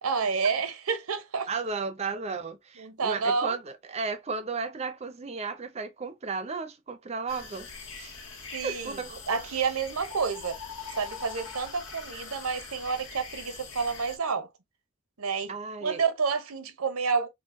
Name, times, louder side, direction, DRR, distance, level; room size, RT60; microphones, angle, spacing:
voice 1, 0.0-1.5 2.8-3.5 8.5-9.0 9.3-10.6 11.0-14.5 15.2-15.5 15.8-17.3, right 5 dB, 85° right, 0.7 m, -29 dB
voice 2, 1.5-7.7 8.0-8.2 8.6-9.2 15.5-16.0, right 4 dB, 30° right, 0.5 m, -34 dB
sound 1, 7.3-14.2, left 5 dB, 65° left, 1.1 m, -43 dB
4.4 x 2.1 x 2.5 m
head